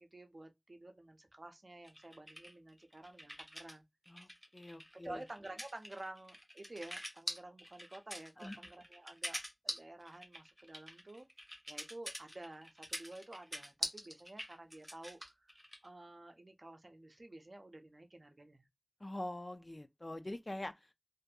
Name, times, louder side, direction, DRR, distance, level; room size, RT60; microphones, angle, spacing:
voice 1, 0.0-3.8 4.9-11.3 11.7-15.6 15.8-18.7, right 2 dB, 80° right, 0.5 m, -51 dB
sound 1, 1.8-3.8 4.1-15.9, equal, 5° left, 0.8 m, -45 dB
voice 2, 4.1-5.2 8.4-8.6 19.0-20.9, left 1 dB, 50° left, 0.4 m, -44 dB
2.6 x 2.5 x 2.3 m
wide cardioid pair, 45°, 0 cm